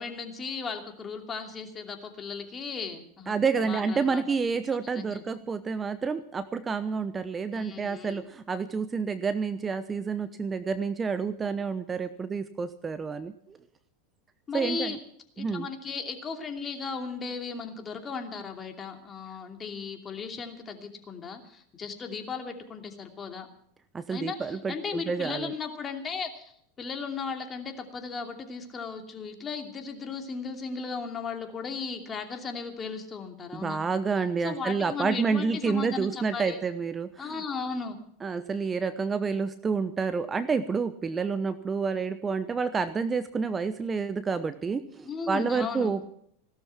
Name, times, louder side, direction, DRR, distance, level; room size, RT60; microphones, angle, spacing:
voice 1, 0.0-4.2 4.9-5.2 7.5-8.2 14.5-15.0 15.4-23.5 24.1-33.8 34.4-36.6 37.2-38.0 45.0-45.9, left 5 dB, 25° left, 5 dB, 2.7 m, -36 dB
voice 2, 3.3-13.6 14.5-15.0 15.4-15.7 23.9-25.5 33.5-37.3 38.2-46.1, right 5 dB, 20° right, 12 dB, 0.9 m, -29 dB
17.0 x 12.5 x 6.0 m, 0.67 s
hypercardioid pair, 90°, 0 cm